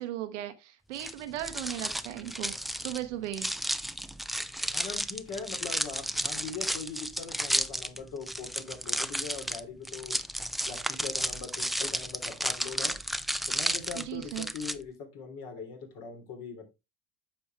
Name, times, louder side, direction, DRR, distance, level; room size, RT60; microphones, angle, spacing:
voice 1, 0.0-3.5 14.0-14.5, right 12 dB, 85° right, 0.9 m, -37 dB
sound 1, 0.9-14.7, equal, ahead, 0.4 m, -33 dB
voice 2, 4.7-10.2 10.6-13.0 13.5-16.6, left 5 dB, 60° left, 3.2 m, -41 dB
9.0 x 6.3 x 3.2 m
hypercardioid pair, 75°, 35 cm